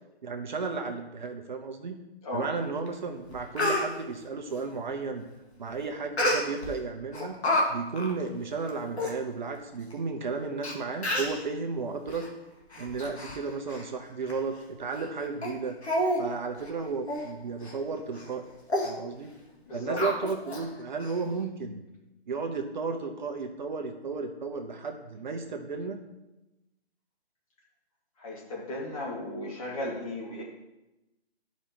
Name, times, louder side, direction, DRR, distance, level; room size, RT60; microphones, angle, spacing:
voice 1, 0.2-2.0 2.3-5.2 5.6-7.4 7.7-12.2 12.8-15.7 16.2-18.5 18.8-19.3 19.7-21.8 22.3-26.0, right 4 dB, 45° right, 4 dB, 0.8 m, -33 dB
Speech, 2.9-3.0 3.3-3.9 6.2-6.7 7.1-7.6 8.0-8.1 8.7-8.8 9.0-9.1 9.9-10.0 10.6-10.7 11.0-11.4 12.1-12.3 12.7-13.4 13.7-13.9 14.3-14.4 14.9-15.1 15.4-15.5 15.8-16.2 16.5-16.7 17.1-17.3 17.6-17.8 18.1-18.3 18.7-18.9 20.0-20.6 21.0-21.1, left 1 dB, 80° left, 1.9 m, -29 dB
voice 2, 19.6-20.0 28.2-30.4, left 1 dB, 35° left, -3 dB, 2.1 m, -35 dB
11.5 x 5.1 x 2.9 m, 0.97 s
figure-of-eight pair, 150°, 32 cm